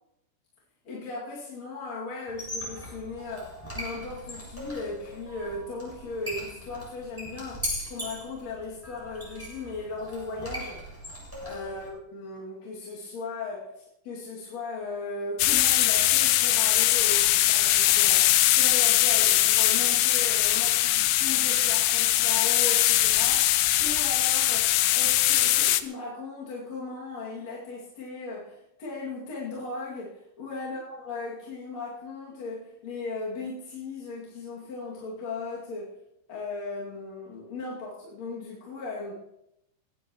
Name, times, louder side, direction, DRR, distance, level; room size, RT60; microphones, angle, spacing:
voice 1, 0.8-10.8 11.4-35.9 36.3-39.1, left 3 dB, 40° left, -6 dB, 3.0 m, -37 dB
Squeak, 2.3-11.9, equal, 5° left, 7.2 m, -39 dB
sound 1, 15.4-25.8, left 14 dB, 85° left, 2.5 m, -21 dB
20.0 x 17.0 x 3.1 m, 0.83 s
omnidirectional pair, 5.7 m